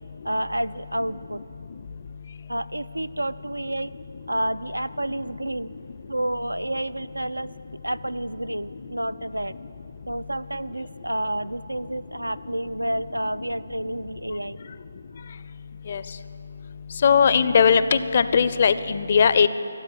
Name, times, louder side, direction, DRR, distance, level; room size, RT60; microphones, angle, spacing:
voice 1, 0.2-1.4 2.5-3.9 4.3-5.7 6.1-7.5 7.8-9.6 10.1-14.6, right 1 dB, 80° right, 16 dB, 0.4 m, -29 dB
voice 2, 17.0-19.5, left 6 dB, 40° left, 14 dB, 0.5 m, -18 dB
13.0 x 8.0 x 9.7 m, 2.8 s
figure-of-eight pair, 150°, 0 cm